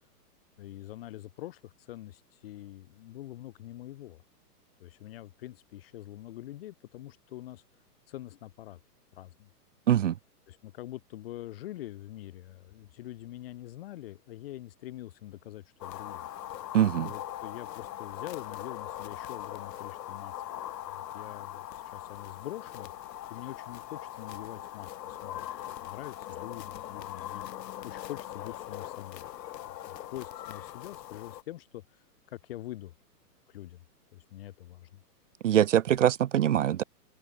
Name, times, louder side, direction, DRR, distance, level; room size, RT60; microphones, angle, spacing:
voice 1, 0.6-4.2 4.8-7.6 8.1-8.8 9.1-9.5 10.5-16.3 17.0-20.4 20.9-22.9 23.3-25.5 25.8-27.4 27.8-29.3 29.7-32.0 32.3-32.9 33.5-33.8 34.1-35.0, left 14 dB, 35° left, 3.6 m, -44 dB
sound 1, 15.8-31.4, left 12 dB, 85° left, 0.8 m, -41 dB
voice 2, 16.7-17.1 35.4-36.8, right 11 dB, 50° right, 0.5 m, -23 dB
open air
hypercardioid pair, 170°, 48 cm